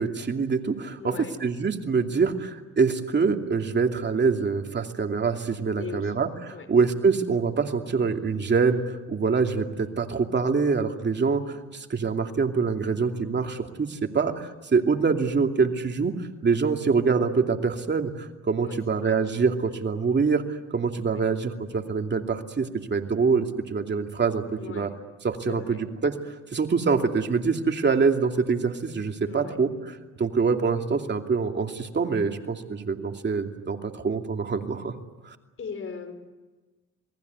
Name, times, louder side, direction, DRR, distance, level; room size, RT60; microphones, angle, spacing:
voice 1, 0.0-1.1 1.4-16.2 16.4-20.4 20.7-24.9 25.2-26.1 26.5-29.7 30.2-35.0 35.2-35.4, right 5 dB, 35° right, 4 dB, 2.7 m, -25 dB
voice 2, 1.0-1.4 5.8-6.1 6.5-6.7 18.6-19.1 21.0-21.2 24.6-24.9 25.5-25.8 29.3-29.6 35.6-36.1, left 5 dB, 45° left, 10 dB, 4.7 m, -38 dB
28.5 x 19.5 x 9.6 m, 1.2 s
cardioid pair, 90°, 30 cm